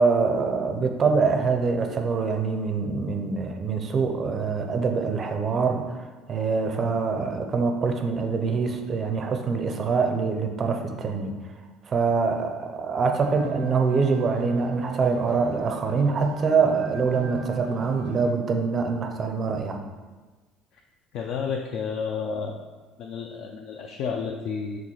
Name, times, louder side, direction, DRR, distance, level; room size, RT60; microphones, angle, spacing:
voice 1, 0.0-11.3 11.9-19.8, right 4 dB, 25° right, 5 dB, 0.5 m, -24 dB
sound 1, 13.1-18.3, right 4 dB, 85° right, 0.6 m, -36 dB
voice 2, 21.1-22.6 23.0-24.8, left 6 dB, 50° left, 2 dB, 0.4 m, -31 dB
5.2 x 3.7 x 5.5 m, 1.3 s
cardioid pair, 170°, 0 cm